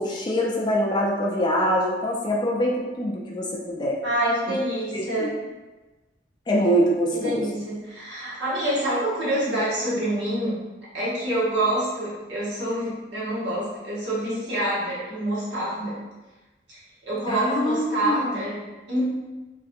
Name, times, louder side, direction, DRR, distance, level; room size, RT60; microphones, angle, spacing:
voice 1, 0.0-4.0 4.9-5.3 6.5-7.5 17.3-18.3, equal, 25° left, -2 dB, 0.3 m, -24 dB
voice 2, 4.0-5.4 7.1-10.6 10.9-15.9 16.7-18.6 18.9-19.0, right 1 dB, 65° right, -9 dB, 1.1 m, -26 dB
2.5 x 2.4 x 2.5 m, 1.2 s
head